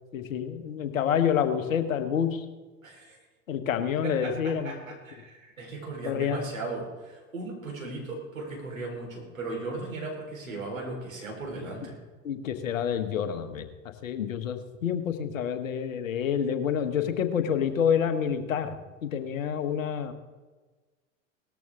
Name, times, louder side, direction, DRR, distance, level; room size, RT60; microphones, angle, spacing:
voice 1, 0.1-2.4 3.5-4.7 6.0-6.4 12.2-13.6 14.0-18.7 19.0-20.1, left 8 dB, 80° left, 9 dB, 1.4 m, -28 dB
voice 2, 2.8-3.2 4.0-12.0, right 2 dB, 85° right, -1 dB, 4.6 m, -37 dB
18.5 x 13.5 x 3.7 m, 1.3 s
figure-of-eight pair, 75°, 40 cm